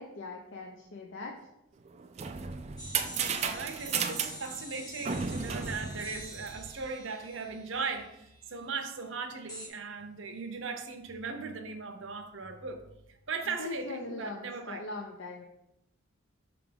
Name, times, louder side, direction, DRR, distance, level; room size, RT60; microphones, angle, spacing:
voice 1, 0.0-1.4 13.5-15.4, left 3 dB, 60° left, 1 dB, 0.6 m, -41 dB
sound 1, 1.9-6.9, right 6 dB, 30° right, 0.3 m, -34 dB
sound 2, 2.8-8.5 9.5-9.7, left 1 dB, 20° left, 1.1 m, -47 dB
voice 2, 3.3-12.8 13.3-14.8, right 4 dB, 60° right, 5 dB, 0.7 m, -38 dB
5.9 x 3.4 x 5.1 m, 0.84 s
head